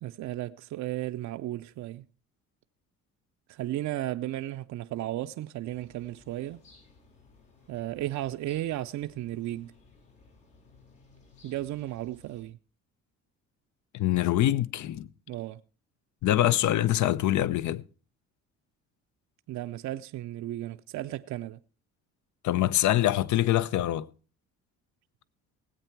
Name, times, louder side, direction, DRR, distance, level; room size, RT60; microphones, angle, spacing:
voice 1, 0.0-2.0 3.5-6.6 7.7-9.7 11.4-12.6 15.3-15.6 19.5-21.6, right 14 dB, 65° right, 0.6 m, -34 dB
sound 1, 5.7-12.4, left 4 dB, 85° left, 7.2 m, -59 dB
voice 2, 13.9-15.1 16.2-17.8 22.4-24.1, left 13 dB, 65° left, 0.7 m, -24 dB
18.0 x 8.2 x 4.5 m
cardioid pair, 95°, 31 cm